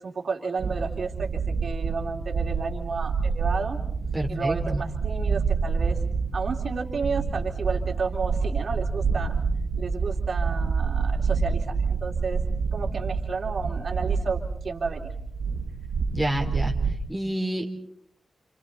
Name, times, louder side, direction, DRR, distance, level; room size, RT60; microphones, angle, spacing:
voice 1, 0.0-3.8 4.3-6.0 6.3-9.4 9.8-12.4 12.7-15.1, right 4 dB, 55° right, 2 dB, 2.9 m, -32 dB
sound 1, 0.6-17.0, right 5 dB, 90° right, 2.6 m, -28 dB
voice 2, 4.1-4.8 16.1-16.7 17.1-17.7, right 1 dB, ahead, 0 dB, 3.5 m, -28 dB
29.5 x 28.5 x 4.1 m, 0.67 s
wide cardioid pair, 125°, 0 cm